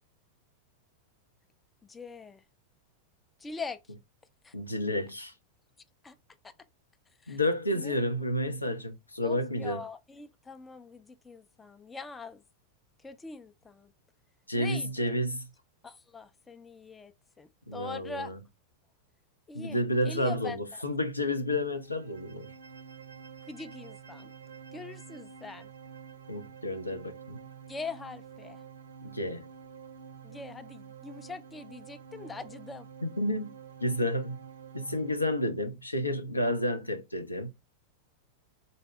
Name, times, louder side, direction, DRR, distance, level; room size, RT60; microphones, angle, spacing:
voice 1, 1.8-2.4 3.4-3.9 4.4-4.5 6.0-6.2 6.4-6.5 7.2-7.4 7.7-8.0 9.2-12.4 13.0-13.9 14.6-15.2 15.8-18.3 19.5-20.8 23.5-24.3 24.7-25.7 27.7-28.6 30.2-32.9 36.5-36.6, left 4 dB, 15° left, 0.4 m, -43 dB
voice 2, 4.5-5.3 7.3-9.8 14.5-15.4 17.7-18.3 19.5-20.6 20.8-22.5 26.3-27.4 29.0-29.5 33.0-33.5 33.8-34.4 34.7-37.5, left 1 dB, 85° left, 0.5 m, -30 dB
sound 1, 21.8-35.3, right 7 dB, 65° right, 0.4 m, -48 dB
3.9 x 2.1 x 3.6 m
figure-of-eight pair, 90°, 0 cm